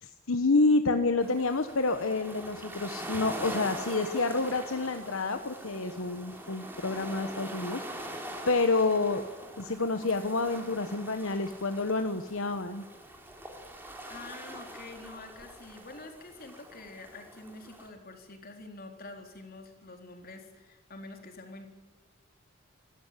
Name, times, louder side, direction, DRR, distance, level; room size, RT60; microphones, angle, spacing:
voice 1, 0.0-9.2 9.6-12.8, left 3 dB, 65° left, 8 dB, 1.1 m, -28 dB
sound 1, 1.2-17.9, right 1 dB, 10° right, 3.3 m, -43 dB
voice 2, 14.1-21.7, left 2 dB, 45° left, 4 dB, 3.7 m, -47 dB
26.0 x 13.5 x 9.9 m, 1.2 s
head